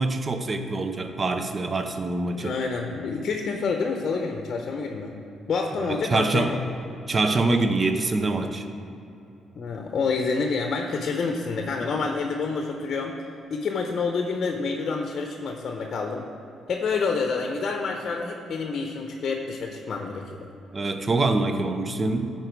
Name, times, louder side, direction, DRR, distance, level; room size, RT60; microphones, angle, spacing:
voice 1, 0.0-2.5 5.8-6.5 7.1-8.6 20.7-22.3, right 2 dB, 30° right, 7 dB, 0.7 m, -25 dB
voice 2, 2.4-5.1 5.5-6.6 9.5-13.2 13.5-16.3 16.7-20.4, left 4 dB, 50° left, 2 dB, 0.8 m, -28 dB
13.0 x 4.6 x 4.7 m, 2.9 s
cardioid pair, 90°, 0 cm